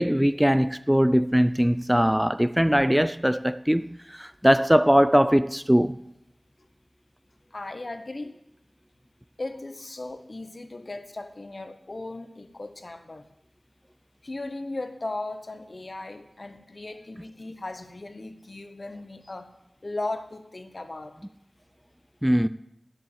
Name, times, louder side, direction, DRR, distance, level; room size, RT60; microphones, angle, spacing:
voice 1, 0.0-6.0 22.2-22.5, equal, 5° right, 0.4 m, -21 dB
voice 2, 7.5-8.3 9.4-13.3 14.2-19.5 19.8-21.2, left 2 dB, 55° left, 1.1 m, -37 dB
10.0 x 7.7 x 7.6 m
wide cardioid pair, 55°, 0 cm